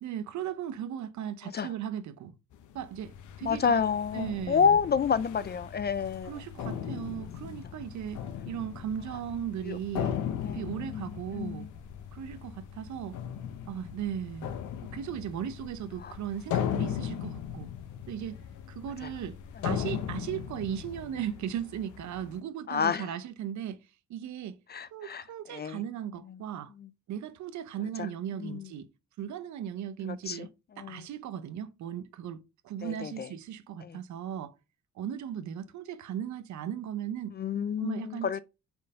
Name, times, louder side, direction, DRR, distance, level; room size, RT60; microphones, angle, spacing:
voice 1, 0.0-2.3 2.7-3.1 3.4-3.8 4.1-4.8 6.2-10.2 10.5-11.7 12.1-13.2 13.7-14.5 14.8-17.7 18.1-18.4 18.7-19.4 19.6-23.8 24.1-24.6 24.9-26.7 27.1-28.9 29.2-34.5 35.0-37.4 37.8-38.4, right 9 dB, 70° right, 0.7 m, -37 dB
sound 1, 2.5-22.4, left 9 dB, 80° left, 0.8 m, -38 dB
sound 2, 3.0-21.1, left 7 dB, 55° left, 3.0 m, -49 dB
voice 2, 3.4-6.4 9.7-9.8 10.4-10.6 10.9-11.7 16.0-16.1 22.7-23.1 24.7-25.2 25.5-25.8 28.4-28.6 30.3-30.5 30.8-31.0 32.8-33.3 33.8-34.0 37.4-38.4, left 6 dB, 35° left, 0.4 m, -29 dB
5.3 x 4.5 x 5.3 m
cardioid pair, 90°, 30 cm